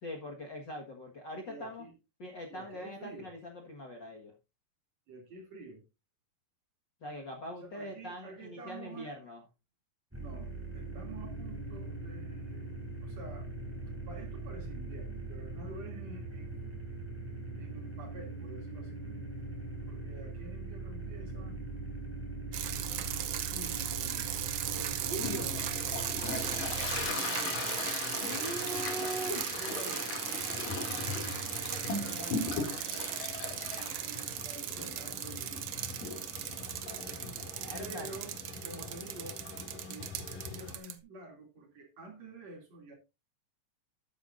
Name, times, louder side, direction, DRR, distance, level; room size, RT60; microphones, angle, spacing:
voice 1, 0.0-1.9 2.2-4.3 7.0-9.4 24.9-25.6 28.2-29.5 37.2-38.1, equal, 40° left, 1.8 m, -41 dB
voice 2, 1.5-1.9 2.5-3.3 5.1-5.8 7.6-9.1 10.2-13.5 14.1-16.7 17.6-19.3 19.9-21.6 22.9-24.4 26.1-27.6 29.6-33.4 33.8-35.8 37.8-38.4 38.6-39.4 39.7-42.9, right 2 dB, 55° right, 3.8 m, -49 dB
sound 1, 10.1-27.1, right 2 dB, 5° right, 4.2 m, -41 dB
sound 2, 22.5-41.0, right 11 dB, 85° right, 1.3 m, -37 dB
Toilet flush, 25.2-40.8, left 4 dB, 75° left, 4.1 m, -39 dB
12.5 x 10.0 x 2.6 m
omnidirectional pair, 3.9 m